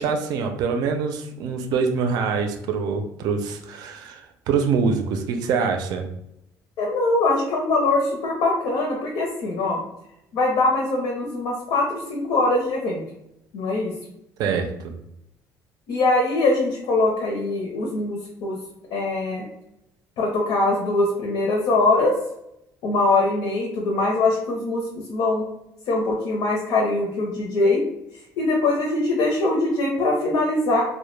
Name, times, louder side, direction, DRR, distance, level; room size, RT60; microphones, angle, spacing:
voice 1, 0.0-6.1 14.4-15.0, right 5 dB, 65° right, 5 dB, 0.4 m, -25 dB
voice 2, 6.8-9.8 10.3-13.0 13.5-13.9 15.9-18.6 18.9-19.5 20.2-22.1 22.8-25.4 25.9-27.8 28.4-30.8, left 2 dB, 75° left, -1 dB, 0.7 m, -22 dB
2.1 x 2.1 x 3.1 m, 0.81 s
cardioid pair, 140°, 7 cm